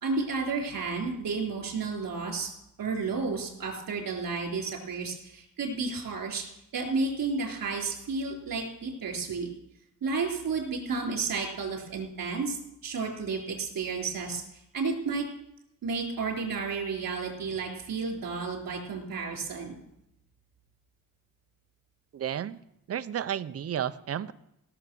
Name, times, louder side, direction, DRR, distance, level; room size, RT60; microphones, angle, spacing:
voice 1, 0.0-2.5 2.8-6.4 6.7-9.5 10.0-15.2 15.8-19.8, right 4 dB, 70° right, 0 dB, 3.8 m, -32 dB
voice 2, 22.1-22.6 22.9-24.3, right 9 dB, 45° right, 12 dB, 0.5 m, -32 dB
17.5 x 6.8 x 6.2 m, 0.80 s
wide cardioid pair, 165°, 34 cm